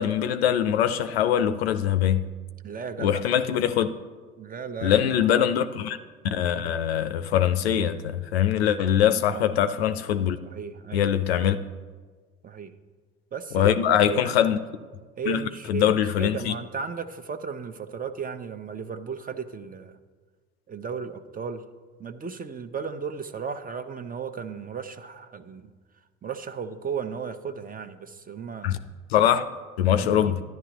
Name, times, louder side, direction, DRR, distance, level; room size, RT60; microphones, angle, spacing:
voice 1, 0.0-2.2 3.0-3.9 4.8-6.0 6.3-10.4 10.9-11.6 13.5-14.6 15.3-15.4 15.7-16.5 28.6-28.8 29.1-29.4 29.8-30.4, left 10 dB, 85° left, 0.5 m, -22 dB
voice 2, 2.6-3.2 4.4-5.1 5.4-5.5 9.3-9.5 10.4-11.1 12.4-12.7 13.3-14.5 15.2-20.0 20.7-21.6 22.0-25.7 26.2-28.7 29.9-30.3, right 6 dB, 30° right, 0.7 m, -35 dB
12.0 x 10.5 x 3.0 m
hypercardioid pair, 60°, 30 cm